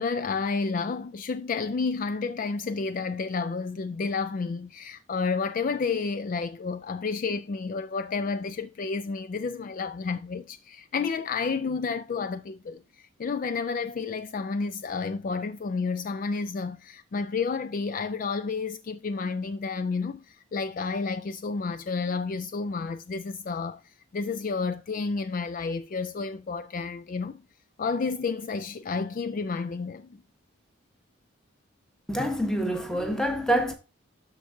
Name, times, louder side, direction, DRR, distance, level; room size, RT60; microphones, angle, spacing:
voice 1, 0.0-23.8 24.1-27.4 27.8-30.1, left 4 dB, 40° left, 0.3 m, -30 dB
voice 2, 32.1-33.7, equal, 5° left, 1.0 m, -26 dB
13.0 x 4.6 x 2.6 m
head